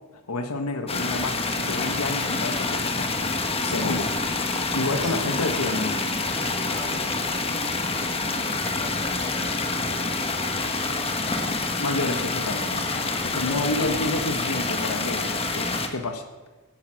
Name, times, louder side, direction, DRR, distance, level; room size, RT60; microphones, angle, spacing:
voice 1, 0.3-3.1 3.6-4.1 4.4-6.0 11.8-12.9 13.3-16.2, left 2 dB, 80° left, 7 dB, 1.3 m, -29 dB
sound 1, 0.9-15.9, left 3 dB, 25° left, 1.3 m, -27 dB
voice 2, 4.8-5.2 6.3-11.8 13.1-13.9, equal, ahead, -2 dB, 2.5 m, -42 dB
15.5 x 10.5 x 6.3 m, 1.3 s
head